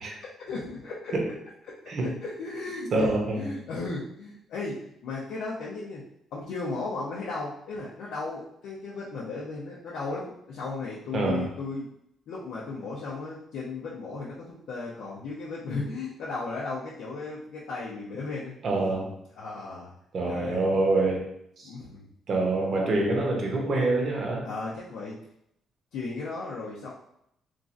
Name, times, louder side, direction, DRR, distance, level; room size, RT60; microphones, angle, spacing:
voice 1, 0.2-1.1 1.7-6.0 6.3-11.9 12.3-18.5 19.3-19.9 20.2-20.7 21.6-22.1 24.4-25.2 25.9-26.9, left 3 dB, 85° left, -7 dB, 0.6 m, -35 dB
voice 2, 2.9-3.5 11.1-11.5 18.6-19.1 20.1-21.3 21.6-21.7 22.3-24.5, right 2 dB, 55° right, 0 dB, 0.7 m, -26 dB
3.0 x 2.5 x 2.5 m, 0.74 s
cardioid pair, 90°, 0 cm